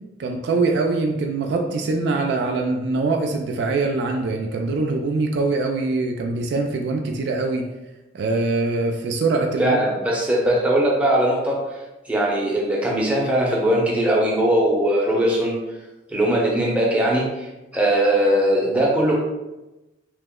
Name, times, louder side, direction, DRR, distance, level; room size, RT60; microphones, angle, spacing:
voice 1, 0.2-7.7 8.1-9.8, right 3 dB, 65° right, 3 dB, 0.3 m, -23 dB
voice 2, 9.6-11.6 12.1-15.6 16.1-17.5 17.7-19.1, right 1 dB, 5° right, -3 dB, 0.6 m, -20 dB
2.9 x 2.0 x 3.5 m, 1.0 s
head